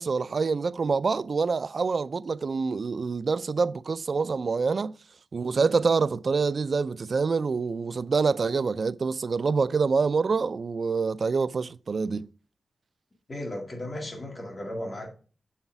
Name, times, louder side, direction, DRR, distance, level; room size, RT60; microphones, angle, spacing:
voice 1, 0.0-5.0 5.3-12.3, right 4 dB, 55° right, 0.3 m, -26 dB
voice 2, 13.3-15.1, left 1 dB, 35° left, 2.0 m, -35 dB
6.9 x 5.7 x 4.5 m
wide cardioid pair, 130°, 0 cm